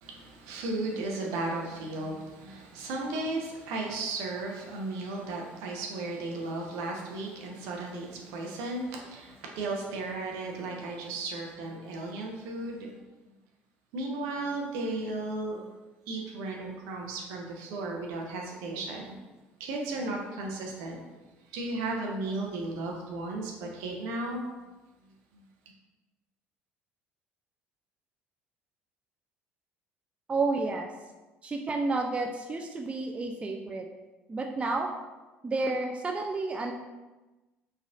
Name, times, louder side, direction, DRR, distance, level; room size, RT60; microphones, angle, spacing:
voice 1, 0.0-13.1 13.9-15.6 16.1-19.2 19.6-21.0 21.5-24.4 25.3-25.4, right 2 dB, 70° right, 0 dB, 0.6 m, -35 dB
voice 2, 30.3-30.9 31.4-33.9 34.3-34.9 35.4-36.7, right 3 dB, 20° right, 2 dB, 0.3 m, -30 dB
3.2 x 2.4 x 2.6 m, 1.1 s
hypercardioid pair, 60°, 6 cm